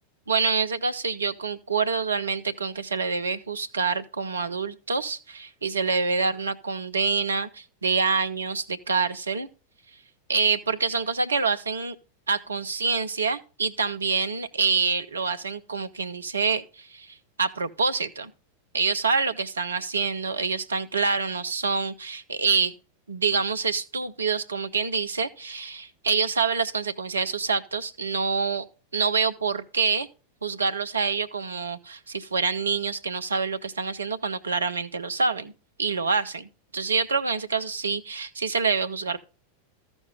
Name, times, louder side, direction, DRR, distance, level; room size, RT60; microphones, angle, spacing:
voice 1, 0.3-9.5 10.3-12.0 12.3-18.3 18.7-22.7 23.1-28.6 28.9-30.1 30.4-35.5 35.8-39.2, right 5 dB, 75° right, 0.5 m, -26 dB
14.0 x 6.2 x 3.7 m
figure-of-eight pair, 90°, 0 cm